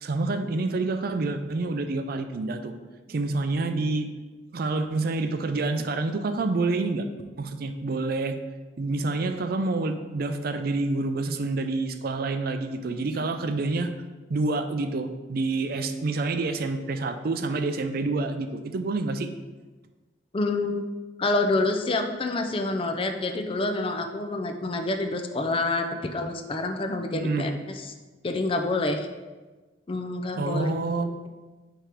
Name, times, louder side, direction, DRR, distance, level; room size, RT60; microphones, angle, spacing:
voice 1, 0.0-2.7 3.1-4.1 4.5-7.1 7.4-8.4 8.8-13.9 14.3-19.3 27.1-27.5 30.4-31.1, right 3 dB, 55° right, 7 dB, 0.4 m, -28 dB
voice 2, 20.3-20.8 21.2-27.6 28.2-29.1 29.9-31.1, left 2 dB, 30° left, 5 dB, 0.5 m, -27 dB
4.7 x 4.5 x 5.1 m, 1.3 s
head